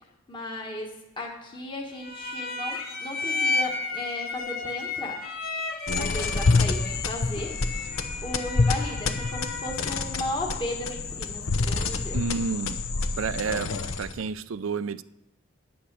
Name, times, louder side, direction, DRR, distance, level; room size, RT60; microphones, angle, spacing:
voice 1, 0.3-5.2 5.9-7.6 8.2-12.2, left 1 dB, 25° left, 1.4 m, -35 dB
sound 1, 2.0-10.1, left 3 dB, 45° left, 1.8 m, -33 dB
sound 2, 5.9-14.3, left 3 dB, 80° left, 0.9 m, -27 dB
voice 2, 12.1-12.8 13.2-13.7 14.0-15.0, right 5 dB, 70° right, 0.4 m, -30 dB
9.7 x 8.6 x 6.7 m
head